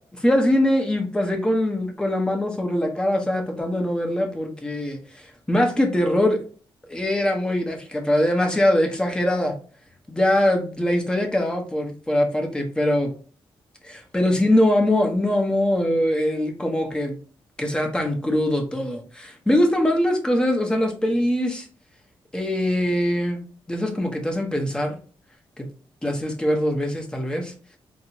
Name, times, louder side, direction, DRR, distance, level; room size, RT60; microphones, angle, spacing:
voice 1, 0.1-6.4 6.9-9.5 10.1-13.1 13.8-17.2 17.6-21.7 22.3-23.4 23.7-25.0 25.6-25.7 26.0-27.5, left 1 dB, 10° left, 2 dB, 0.8 m, -22 dB
4.1 x 2.0 x 2.8 m, 0.40 s
cardioid pair, 100°, 10 cm